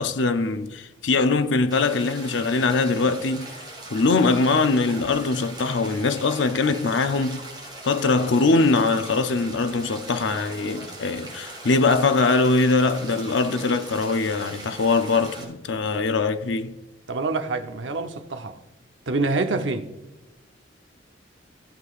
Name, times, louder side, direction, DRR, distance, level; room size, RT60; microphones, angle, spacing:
voice 1, 0.0-3.5 3.9-7.4 7.8-16.7, left 3 dB, 75° left, 0.6 m, -22 dB
sound 1, 1.7-15.4, right 2 dB, 25° right, 3.2 m, -40 dB
voice 2, 17.1-18.6 19.1-19.9, right 3 dB, 75° right, 0.8 m, -26 dB
15.5 x 8.1 x 2.4 m
head